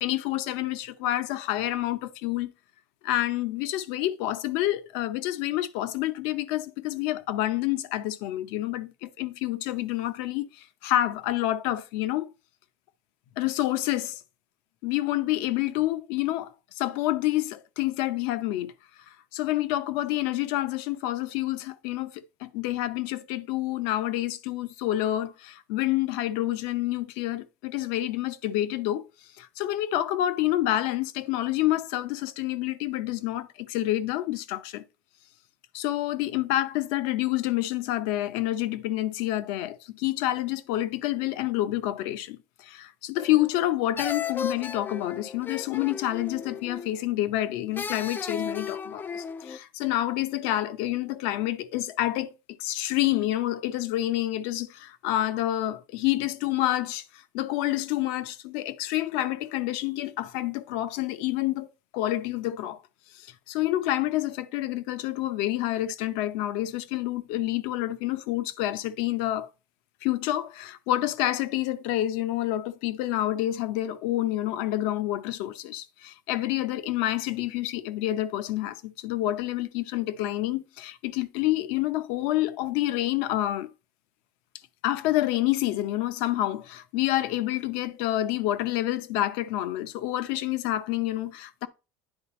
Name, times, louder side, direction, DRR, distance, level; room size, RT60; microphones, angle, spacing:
voice 1, 0.0-2.5 3.0-12.3 13.4-14.2 14.8-18.7 19.1-29.0 29.4-34.8 35.7-52.3 52.6-61.7 61.9-62.8 63.1-69.5 70.0-83.7 84.8-91.7, left 14 dB, 75° left, 0.7 m, -28 dB
sound 1, 43.2-43.7 44.0-47.0 47.8-49.6, left 6 dB, 20° left, 0.3 m, -35 dB
9.8 x 3.9 x 4.2 m
supercardioid pair, 120°, 10 cm